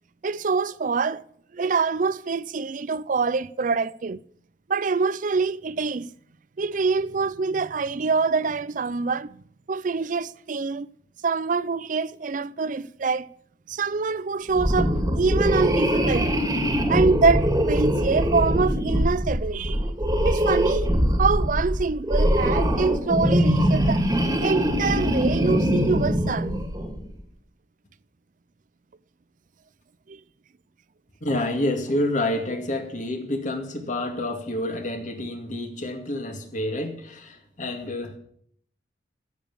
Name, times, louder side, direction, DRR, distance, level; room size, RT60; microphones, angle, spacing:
voice 1, 0.2-1.2 1.5-4.2 4.7-6.1 6.6-9.4 9.7-10.9 11.2-13.3 13.7-16.4 16.9-19.8 20.2-20.9 21.2-24.1 24.4-26.5 30.1-30.2, right 4 dB, 50° right, 0.5 m, -25 dB
sound 1, 14.5-27.0, equal, 20° right, 2.0 m, -22 dB
voice 2, 31.2-38.2, left 1 dB, 45° left, 2.3 m, -28 dB
16.0 x 7.3 x 7.1 m
head